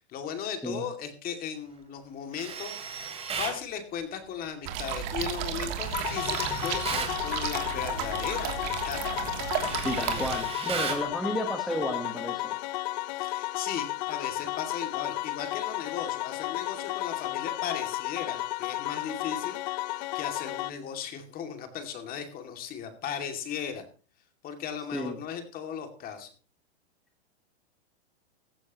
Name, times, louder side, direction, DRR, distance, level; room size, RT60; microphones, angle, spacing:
voice 1, 0.1-9.1 13.1-19.6 19.9-23.8 24.4-26.3, left 8 dB, 25° left, 6 dB, 2.5 m, -37 dB
Tools, 2.3-3.6 5.8-7.2 8.7-8.9 9.2-11.1, right 6 dB, 20° right, 3.2 m, -36 dB
sound 1, 4.6-10.4, right 9 dB, 45° right, 2.9 m, -33 dB
sound 2, 5.9-20.7, left 18 dB, 45° left, 0.6 m, -33 dB
voice 2, 9.8-12.6 24.9-25.2, equal, ahead, 3 dB, 1.3 m, -32 dB
15.5 x 15.0 x 3.0 m, 0.37 s
hypercardioid pair, 145°, 33 cm